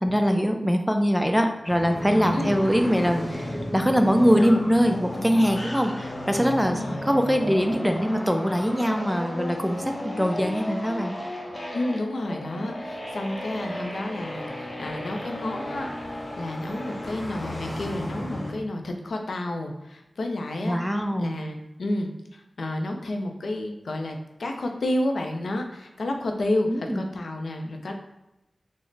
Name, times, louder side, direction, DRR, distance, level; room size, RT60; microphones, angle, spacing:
voice 1, 0.0-11.2 20.6-21.4 26.7-27.0, equal, ahead, 4 dB, 0.3 m, -23 dB
sound 1, 1.6-18.5, equal, 45° left, 0.6 m, -33 dB
voice 2, 6.7-7.0 11.7-15.9 16.4-20.8 21.2-27.9, left 1 dB, 90° left, 3 dB, 0.4 m, -30 dB
3.9 x 2.0 x 3.2 m, 0.93 s
wide cardioid pair, 80°, 0 cm